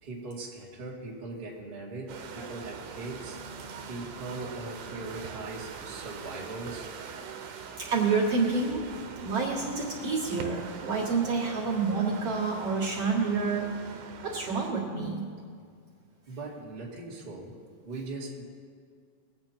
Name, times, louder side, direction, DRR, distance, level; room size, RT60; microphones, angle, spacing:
voice 1, 0.0-3.4 3.9-6.9 16.3-17.5 17.8-18.4, right 2 dB, 20° right, -5 dB, 1.7 m, -40 dB
sound 1, 2.1-14.7, right 6 dB, 75° right, 2.9 m, -42 dB
voice 2, 7.8-8.8 9.2-13.7 14.2-15.3, right 4 dB, 45° right, -6 dB, 2.6 m, -28 dB
23.0 x 8.8 x 4.4 m, 2.2 s
omnidirectional pair, 4.5 m